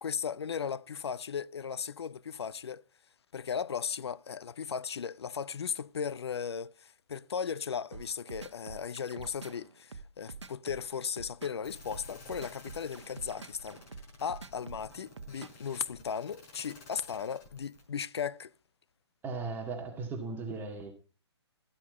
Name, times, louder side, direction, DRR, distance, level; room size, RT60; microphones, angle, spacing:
voice 1, 0.0-2.8 3.3-13.8 14.2-18.5, left 7 dB, 65° left, 0.6 m, -36 dB
sound 1, 7.9-15.7, right 4 dB, 80° right, 1.0 m, -46 dB
sound 2, 11.6-17.8, left 3 dB, 35° left, 5.3 m, -53 dB
voice 2, 19.2-20.9, right 4 dB, 15° right, 2.0 m, -37 dB
14.5 x 8.3 x 4.2 m
figure-of-eight pair, 130°, 15 cm